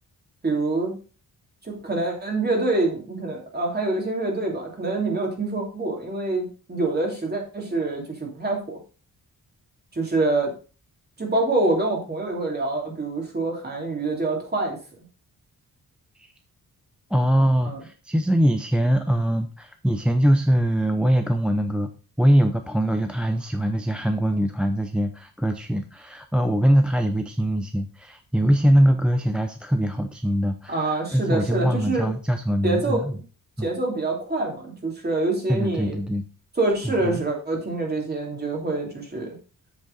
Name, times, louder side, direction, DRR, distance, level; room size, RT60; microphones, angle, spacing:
voice 1, 0.4-1.0 1.6-8.8 9.9-10.5 11.2-14.8 17.6-17.8 30.7-32.1 32.6-33.2 33.6-35.9 36.6-39.3, right 2 dB, 25° right, 0 dB, 3.0 m, -26 dB
voice 2, 17.1-21.9 22.2-33.2 33.6-33.7 35.5-36.2 36.8-37.2, equal, 5° right, 6 dB, 0.6 m, -22 dB
7.9 x 6.9 x 3.9 m, 0.36 s
wide cardioid pair, 115°, 36 cm